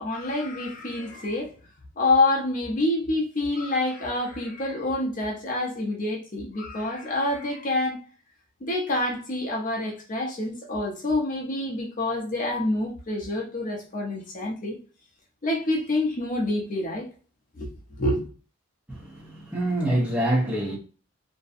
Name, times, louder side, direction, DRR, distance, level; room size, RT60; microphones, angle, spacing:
voice 1, 0.0-1.5 2.0-8.0 8.6-14.8 15.4-17.1 17.6-17.7 18.0-18.2, left 2 dB, 40° left, 0.6 m, -27 dB
voice 2, 18.9-20.8, right 1 dB, 5° right, 0.7 m, -26 dB
2.6 x 2.1 x 2.4 m
head